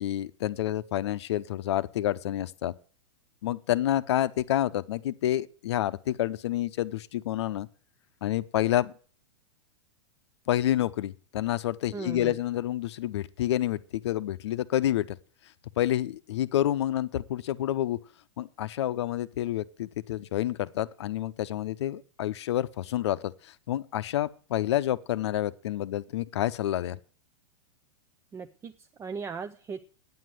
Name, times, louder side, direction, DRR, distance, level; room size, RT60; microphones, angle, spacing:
voice 1, 0.0-2.7 3.4-7.7 8.2-8.9 10.5-15.2 15.8-18.0 18.4-23.3 23.7-27.0, left 13 dB, 70° left, 0.7 m, -28 dB
voice 2, 11.9-12.4 28.3-29.8, right 5 dB, 20° right, 0.5 m, -38 dB
9.4 x 7.6 x 7.8 m
hypercardioid pair, 120°, 15 cm